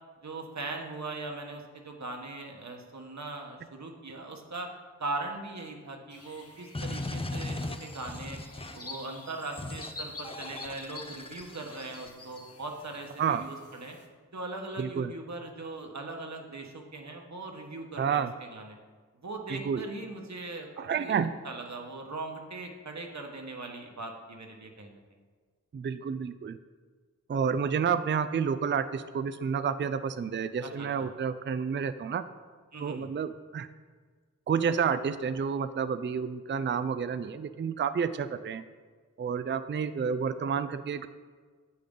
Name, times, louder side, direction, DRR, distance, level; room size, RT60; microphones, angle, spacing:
voice 1, 0.2-4.7 5.0-8.4 8.7-14.0 14.3-18.8 19.2-21.2 21.4-25.0 30.6-31.1 32.7-33.1, right 2 dB, 60° right, 2 dB, 1.3 m, -40 dB
sound 1, 6.1-14.1, left 3 dB, 50° left, 1.3 m, -48 dB
sound 2, 6.7-8.9 9.6-9.9 10.2-12.1, left 2 dB, 20° left, 0.6 m, -38 dB
voice 2, 14.8-15.1 18.0-18.3 19.5-19.8 20.8-21.4 25.7-26.6 27.3-32.2 32.8-33.7 34.5-38.6 39.2-41.1, right 6 dB, 40° right, 12 dB, 0.4 m, -30 dB
9.1 x 8.5 x 3.8 m, 1.5 s
wide cardioid pair, 70°, 31 cm